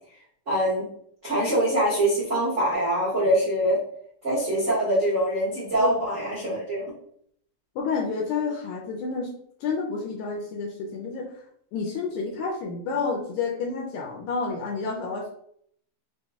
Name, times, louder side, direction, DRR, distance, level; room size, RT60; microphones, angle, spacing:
voice 1, 0.5-0.9 1.2-3.8 4.2-6.9, right 1 dB, 55° right, -9 dB, 0.8 m, -24 dB
voice 2, 7.8-9.3 9.6-11.3 11.7-15.3, left 4 dB, 75° left, 0 dB, 1.9 m, -29 dB
5.6 x 2.3 x 3.5 m, 0.66 s
omnidirectional pair, 4.0 m